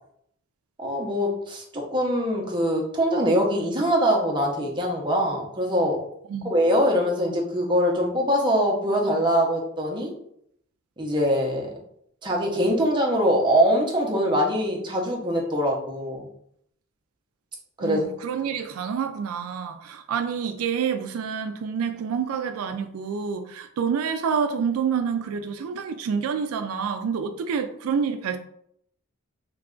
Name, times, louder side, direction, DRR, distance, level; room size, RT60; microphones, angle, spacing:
voice 1, 0.8-6.0 6.4-10.1 11.0-11.7 12.2-16.3 17.8-18.1, equal, 20° right, 0.7 m, -23 dB
voice 2, 17.8-28.4, right 6 dB, 85° right, 0.3 m, -28 dB
3.1 x 2.4 x 3.7 m
head